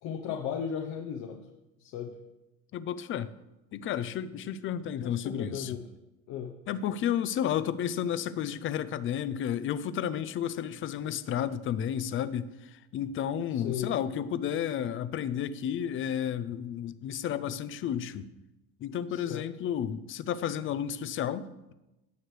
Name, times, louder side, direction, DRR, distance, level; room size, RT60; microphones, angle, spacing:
voice 1, 0.0-1.5 1.8-2.2 5.0-5.8 6.3-6.5 13.5-13.9 19.1-19.4, left 8 dB, 60° left, 4 dB, 0.9 m, -36 dB
voice 2, 2.7-3.3 3.7-5.8 6.7-18.3 18.8-21.7, left 9 dB, 40° left, 14 dB, 0.6 m, -32 dB
16.0 x 6.4 x 3.3 m, 1.0 s
supercardioid pair, 120°, 31 cm